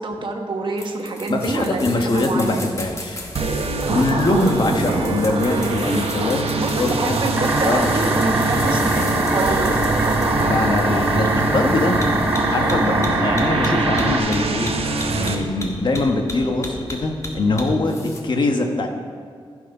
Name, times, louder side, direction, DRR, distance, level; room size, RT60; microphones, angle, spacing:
voice 1, 0.0-2.7 3.8-4.5 5.0-5.1 6.5-9.8, right 3 dB, 55° right, 2 dB, 1.3 m, -26 dB
sound 1, 0.8-18.2, left 2 dB, 30° left, 1.5 m, -34 dB
voice 2, 1.3-3.2 3.9-6.4 6.8-7.2 7.6-8.0 8.6-9.0 10.4-12.0 12.5-14.7 15.1-18.9, left 2 dB, 50° left, 3 dB, 1.2 m, -22 dB
sound 2, 3.3-15.3, right 3 dB, 85° right, 1.0 m, -24 dB
sound 3, 7.4-14.2, right 2 dB, 20° right, 1.3 m, -22 dB
15.0 x 6.5 x 5.4 m, 2.1 s
wide cardioid pair, 135°, 10 cm